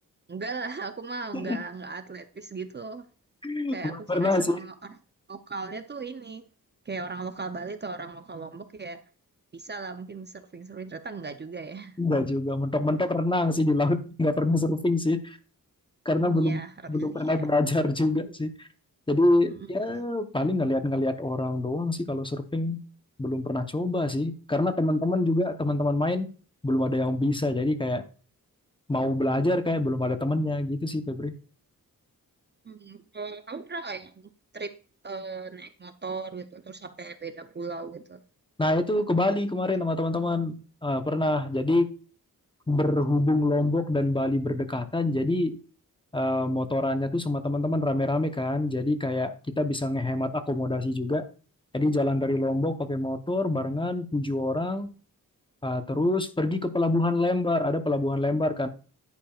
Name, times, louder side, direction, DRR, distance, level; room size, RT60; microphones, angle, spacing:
voice 1, 0.3-3.1 3.7-5.0 5.3-6.4 6.8-9.0 9.5-12.0 16.3-17.5 19.5-19.9 32.6-34.7 35.0-38.2, right 4 dB, 30° right, 8 dB, 0.6 m, -38 dB
voice 2, 3.4-4.6 12.0-15.4 16.0-16.6 16.9-18.7 19.1-22.8 23.2-26.3 26.6-28.0 28.9-31.3 38.6-41.9 42.7-45.6 46.1-51.3 51.7-54.9 55.6-58.7, left 2 dB, 15° left, 8 dB, 0.8 m, -26 dB
10.5 x 9.1 x 2.4 m, 0.39 s
wide cardioid pair, 125°, 35 cm